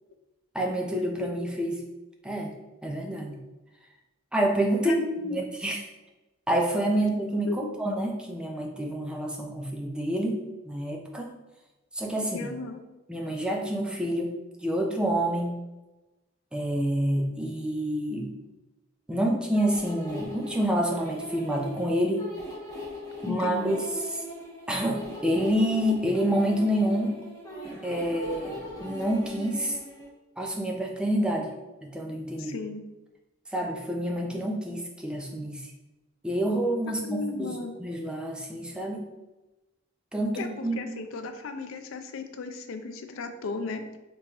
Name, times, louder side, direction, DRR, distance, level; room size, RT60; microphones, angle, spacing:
voice 1, 0.5-1.8 2.2-2.5 2.8-3.4 4.3-4.9 5.3-5.8 6.5-10.4 10.6-11.3 11.9-12.5 13.1-14.4 14.6-15.6 16.5-18.3 19.1-22.2 23.2-23.9 24.7-27.2 27.8-29.8 30.4-31.5 31.8-32.6 33.5-35.6 36.2-39.1 40.1-40.8, right 1 dB, 5° right, 0 dB, 0.4 m, -28 dB
voice 2, 4.8-5.4 7.5-7.7 12.3-12.8 23.3-23.9 32.4-32.8 37.0-37.7 40.4-43.8, left 4 dB, 85° left, 7 dB, 0.4 m, -35 dB
sound 1, 19.5-30.1, equal, 20° left, 1.2 m, -40 dB
3.4 x 2.9 x 2.9 m, 1.1 s
head